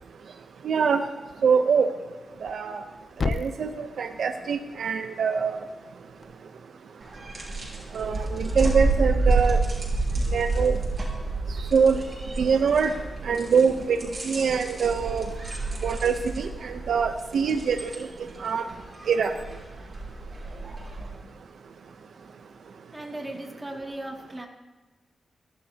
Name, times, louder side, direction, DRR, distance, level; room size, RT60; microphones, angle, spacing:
voice 1, 0.6-1.0 1.4-1.9 2.4-2.8 3.2-5.6 7.9-9.6 10.3-10.8 11.7-12.0 12.4-12.9 13.2-15.2 15.8-18.7 19.1-19.3, right 6 dB, 75° right, 7 dB, 0.8 m, -24 dB
Thump thud, 2.3-6.4, left 4 dB, 45° left, 0.4 m, -36 dB
sound 1, 7.0-21.1, right 3 dB, 35° right, 5.8 m, -29 dB
voice 2, 21.0-21.6 21.8-21.9 22.2-22.3 22.7-24.5, right 1 dB, 15° right, 0 dB, 2.5 m, -39 dB
29.0 x 12.0 x 2.9 m, 1.2 s
cardioid pair, 95°, 0 cm